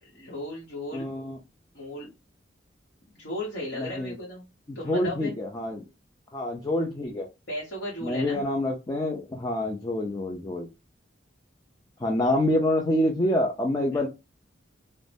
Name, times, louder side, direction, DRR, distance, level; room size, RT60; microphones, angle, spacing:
voice 1, 0.0-1.1 1.7-2.1 3.1-4.4 4.7-5.3 7.5-8.4 13.9-14.1, left 1 dB, 65° left, -4 dB, 0.9 m, -35 dB
voice 2, 0.9-1.4 3.7-4.2 4.7-5.8 6.3-7.3 8.0-10.7 12.0-14.1, left 1 dB, 20° left, 1 dB, 0.3 m, -27 dB
2.5 x 2.0 x 3.3 m, 0.26 s
head